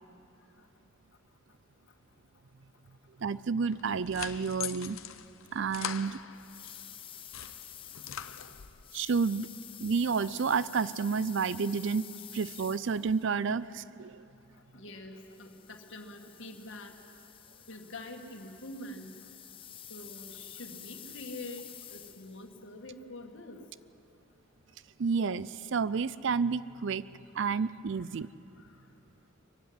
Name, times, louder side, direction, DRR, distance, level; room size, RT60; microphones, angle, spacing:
voice 1, 3.2-5.0 5.5-6.2 8.9-9.5 9.8-12.1 12.3-14.2 25.0-27.0 27.3-28.3, right 5 dB, 60° right, 17 dB, 0.4 m, -30 dB
sound 1, 3.7-6.8 7.1-8.9, left 10 dB, 80° left, 0.7 m, -42 dB
sound 2, 6.3-13.4 15.2-22.5, left 10 dB, 25° left, 0.6 m, -49 dB
voice 2, 14.7-17.0 17.7-19.1 19.9-23.6 28.0-28.1 28.6-28.7, left 1 dB, 65° left, 2 dB, 2.1 m, -45 dB
22.5 x 15.5 x 9.7 m, 2.7 s
head